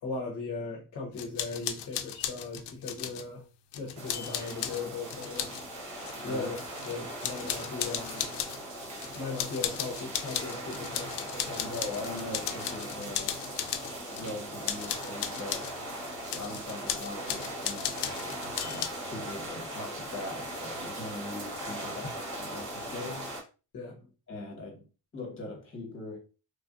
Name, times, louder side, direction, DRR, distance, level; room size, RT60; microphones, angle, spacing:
voice 1, 0.0-3.4 3.7-5.6 6.2-6.6 6.8-8.3 8.6-8.8 9.1-11.1 11.4-11.7 21.8-22.1 23.7-24.0, left 3 dB, 50° left, 0.8 m, -38 dB
sound 1, 1.2-3.3 3.7-5.6 6.0-6.9 7.2-8.6 9.0-14.4 14.6-15.7 16.3-18.9, left 10 dB, 85° left, 0.5 m, -36 dB
sound 2, 4.0-23.4, right 1 dB, 45° right, 1.0 m, -39 dB
voice 2, 11.6-13.4 14.2-15.7 16.3-22.0 22.4-23.3 24.3-24.9 25.1-26.2, left 2 dB, 30° left, 1.2 m, -41 dB
3.2 x 2.4 x 2.5 m
cardioid pair, 155°, 40 cm